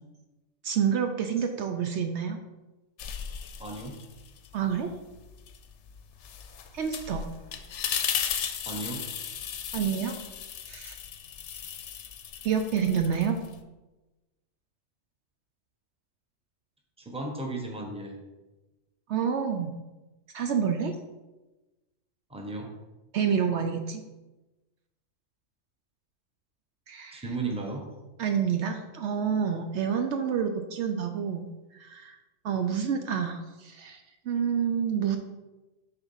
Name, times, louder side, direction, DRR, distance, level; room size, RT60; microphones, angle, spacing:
voice 1, 0.6-2.4 4.5-4.9 6.7-7.2 9.7-10.2 10.7-10.9 12.4-13.4 19.1-19.7 20.3-20.9 23.1-24.0 26.9-27.2 28.2-32.1 32.4-34.0 34.3-35.2, right 7 dB, 70° right, 6 dB, 0.8 m, -28 dB
sound 1, 3.0-4.5 4.9-13.6, left 8 dB, 70° left, 0.9 m, -36 dB
voice 2, 3.6-3.9 8.7-9.0 17.0-18.2 22.3-22.7 27.1-27.9, right 3 dB, 5° right, 0 dB, 0.9 m, -35 dB
6.8 x 4.1 x 5.6 m, 1.1 s
omnidirectional pair, 1.3 m